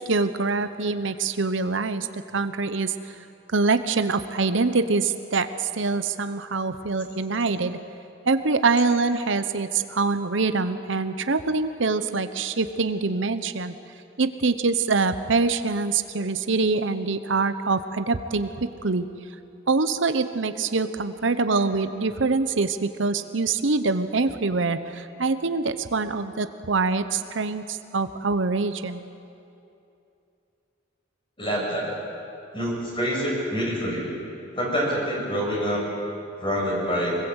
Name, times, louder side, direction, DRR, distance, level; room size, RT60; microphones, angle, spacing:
voice 1, 0.0-3.1 3.5-7.8 8.3-13.7 14.2-19.1 19.7-29.0, right 4 dB, 70° right, 10 dB, 0.9 m, -24 dB
voice 2, 31.4-31.9 32.5-34.1 34.6-35.8 36.4-37.2, equal, 25° left, -2 dB, 6.8 m, -26 dB
24.5 x 21.0 x 8.1 m, 2.7 s
head